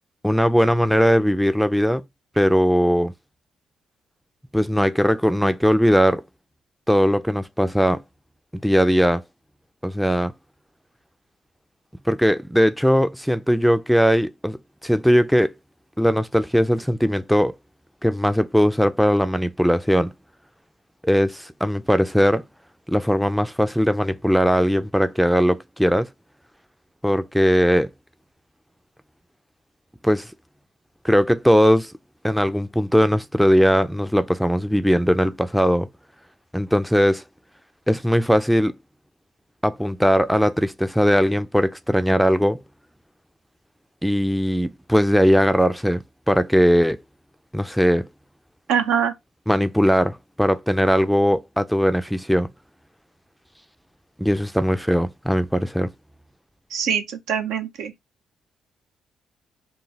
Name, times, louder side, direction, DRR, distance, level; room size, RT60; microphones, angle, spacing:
voice 1, 0.2-2.0 2.4-3.1 4.5-6.2 6.9-8.0 8.5-9.2 9.8-10.3 12.1-15.5 16.0-17.5 18.0-20.1 21.0-22.4 22.9-26.1 27.0-27.9 30.0-30.3 31.0-31.9 32.2-35.9 36.5-37.2 37.9-38.8 39.6-42.6 44.0-47.0 47.5-48.1 49.5-52.5 54.2-55.9, equal, ahead, 0.3 m, -19 dB
voice 2, 48.7-49.1 56.7-57.9, right 8 dB, 85° right, 0.8 m, -23 dB
3.8 x 2.4 x 4.0 m
cardioid pair, 90°, 0 cm